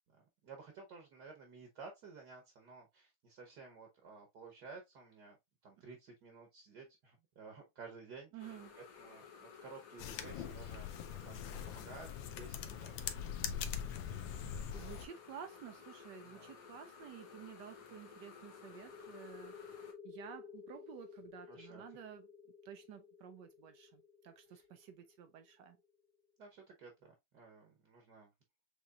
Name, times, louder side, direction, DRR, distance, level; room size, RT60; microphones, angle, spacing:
voice 1, 0.4-5.4 5.6-10.9 11.2-13.1 16.2-16.5 21.5-21.8 24.5-24.6 26.4-28.3, right 4 dB, 60° right, 1.4 m, -54 dB
voice 2, 8.3-8.8 14.7-22.3 22.6-25.8, right 9 dB, 75° right, 1.0 m, -52 dB
sound 1, 8.4-19.9, left 6 dB, 90° left, 2.0 m, -55 dB
sound 2, 10.0-15.1, left 8 dB, 75° left, 1.3 m, -42 dB
sound 3, 18.4-25.8, left 6 dB, 30° left, 1.1 m, -54 dB
6.7 x 3.0 x 2.3 m
omnidirectional pair, 2.3 m